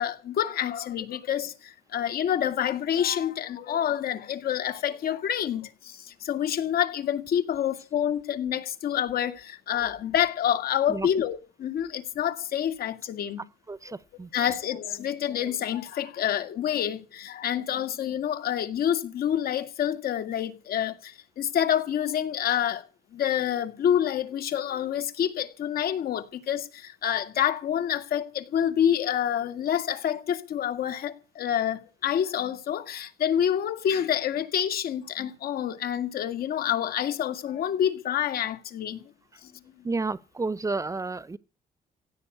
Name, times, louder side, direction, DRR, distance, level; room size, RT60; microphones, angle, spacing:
voice 1, 0.0-13.4 14.3-22.8 23.1-39.0 39.4-39.5, left 10 dB, 75° left, 2.2 m, -27 dB
voice 2, 13.7-14.3 39.8-41.4, right 3 dB, 20° right, 0.8 m, -31 dB
16.5 x 9.3 x 8.3 m
cardioid pair, 105°, 16 cm